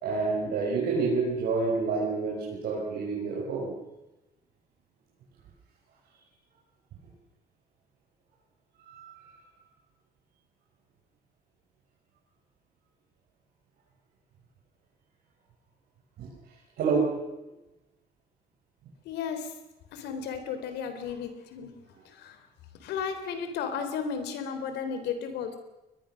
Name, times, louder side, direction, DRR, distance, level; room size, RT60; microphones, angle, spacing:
voice 1, 0.0-3.8 8.9-9.2 16.2-16.3 16.8-17.2, right 4 dB, 70° right, -3 dB, 5.7 m, -28 dB
voice 2, 19.1-19.5 19.9-21.7 22.1-22.4 22.8-25.6, left 6 dB, 80° left, 8 dB, 3.6 m, -34 dB
22.0 x 21.0 x 6.5 m, 1.0 s
cardioid pair, 110°, 17 cm